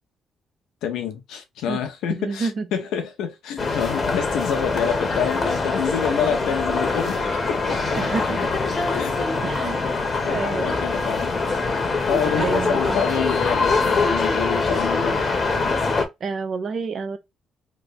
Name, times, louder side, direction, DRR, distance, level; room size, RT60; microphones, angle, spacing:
voice 1, 0.8-7.8 9.0-9.2 9.6-9.9 10.2-11.4 12.1-15.1, left 8 dB, 90° left, 0.9 m, -27 dB
voice 2, 2.1-2.7 8.0-8.5 9.4-10.0 10.3-10.7 12.3-13.1 16.2-17.2, right 4 dB, 55° right, 0.7 m, -29 dB
sound 1, 3.6-16.1, left 3 dB, 40° left, 1.0 m, -23 dB
3.2 x 2.1 x 3.9 m
cardioid pair, 90°, 0 cm